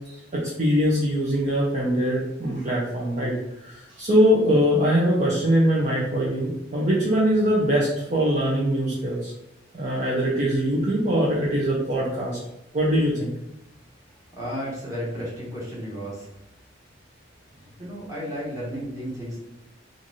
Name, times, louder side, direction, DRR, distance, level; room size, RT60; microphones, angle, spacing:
voice 1, 0.0-9.3 9.7-12.4 12.7-13.3, equal, 35° right, -5 dB, 0.6 m, -22 dB
voice 2, 14.3-16.3 17.8-19.4, equal, 15° right, -6 dB, 1.3 m, -33 dB
3.1 x 2.5 x 4.0 m, 0.87 s
head